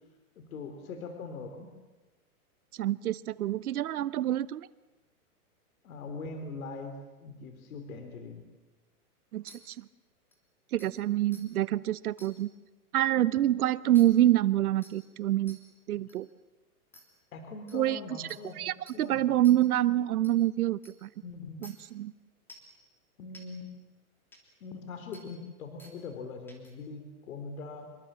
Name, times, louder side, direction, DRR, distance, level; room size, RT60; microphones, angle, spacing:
voice 1, 0.4-1.7 5.8-8.4 17.3-18.6 18.9-19.3 21.2-21.7 23.2-23.7 24.6-28.0, left 4 dB, 65° left, 6 dB, 3.8 m, -42 dB
voice 2, 2.8-4.7 9.3-9.8 10.7-12.5 12.9-15.6 15.9-16.3 17.7-18.0 18.6-21.1 21.6-22.1, right 13 dB, 75° right, 18 dB, 0.9 m, -26 dB
sound 1, 9.5-9.6 10.3-10.4 10.8-10.9 11.3-11.4 12.2-12.3 13.9-14.0 14.8-14.9 15.5-15.6 16.1-16.2 16.9-17.0 17.7-17.8 18.3-18.4 18.9-19.0 19.4-19.6 20.2-20.3 20.8-20.9 21.6-21.7 22.5-22.7 23.3-23.4 24.3-24.4 25.1-25.2 25.8-25.9 26.5-26.7, left 1 dB, 5° left, 3.1 m, -52 dB
27.0 x 23.0 x 7.6 m, 1.2 s
supercardioid pair, 170°, 45 cm